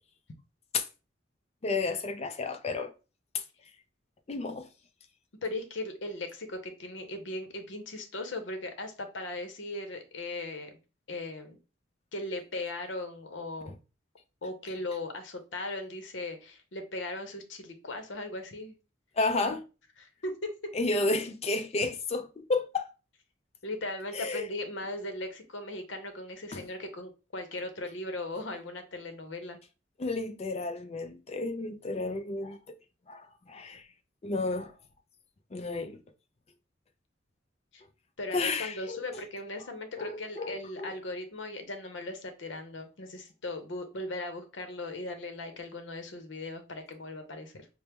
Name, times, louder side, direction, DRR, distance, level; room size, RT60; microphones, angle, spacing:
voice 1, 1.6-2.9 3.3-3.4 4.3-4.7 19.2-19.6 20.7-22.9 24.1-24.5 26.5-26.6 30.0-32.8 33.1-33.9 34.2-34.7 35.5-36.0 38.3-39.0 40.0-40.9, left 3 dB, 35° left, 0.4 m, -32 dB
voice 2, 5.4-10.8 11.1-11.6 12.1-13.7 14.4-18.8 20.0-20.7 23.6-29.6 37.7-37.8 38.2-47.7, left 2 dB, 75° left, 0.7 m, -38 dB
4.4 x 2.0 x 3.4 m
head